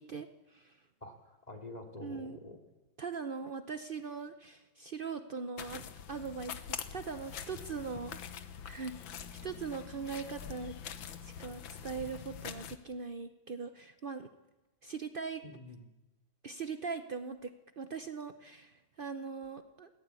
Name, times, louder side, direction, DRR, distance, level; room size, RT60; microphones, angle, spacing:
voice 1, 0.0-0.8 2.0-2.4 3.0-5.8 6.1-8.2 8.6-10.8 11.2-14.3 14.8-15.4 16.4-19.9, right 5 dB, 80° right, 8 dB, 0.4 m, -41 dB
voice 2, 1.0-2.6 15.4-15.9, left 2 dB, 20° left, 5 dB, 2.5 m, -47 dB
sound 1, 5.6-12.8, left 8 dB, 75° left, 1.8 m, -44 dB
20.5 x 16.0 x 8.3 m, 1.1 s
omnidirectional pair, 2.1 m